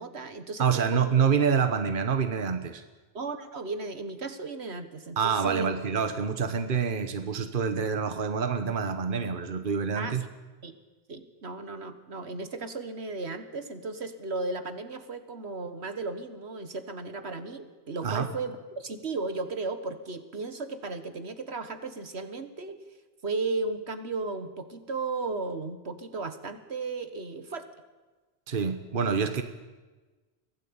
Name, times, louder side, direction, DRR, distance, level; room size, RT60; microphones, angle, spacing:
voice 1, 0.0-1.1 3.1-5.7 10.0-10.2 10.6-10.7 11.1-22.8 23.2-27.7, right 3 dB, 80° right, 10 dB, 1.8 m, -35 dB
voice 2, 0.6-2.8 5.2-10.2 18.0-18.3 28.5-29.4, right 6 dB, 55° right, 9 dB, 1.4 m, -27 dB
24.0 x 16.5 x 8.8 m, 1.2 s
omnidirectional pair, 1.1 m